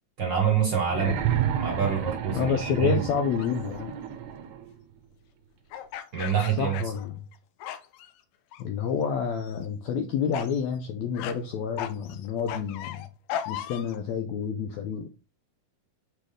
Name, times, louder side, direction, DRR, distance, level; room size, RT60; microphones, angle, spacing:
voice 1, 0.2-1.2 1.5-3.0 6.1-6.8, right 7 dB, 55° right, 1.3 m, -26 dB
sound 1, 0.9-4.7 5.9-6.0, right 9 dB, 75° right, 1.9 m, -31 dB
voice 2, 2.3-3.9 6.6-7.3 8.6-13.0 13.5-15.1, left 7 dB, 75° left, 1.7 m, -29 dB
sound 2, 3.4-3.6 5.7-7.4 7.6-8.1 8.5-9.0 9.4-9.7 10.3-10.6 11.1-11.4 11.8-14.0, left 10 dB, 90° left, 2.2 m, -37 dB
6.4 x 5.1 x 3.7 m
omnidirectional pair, 3.7 m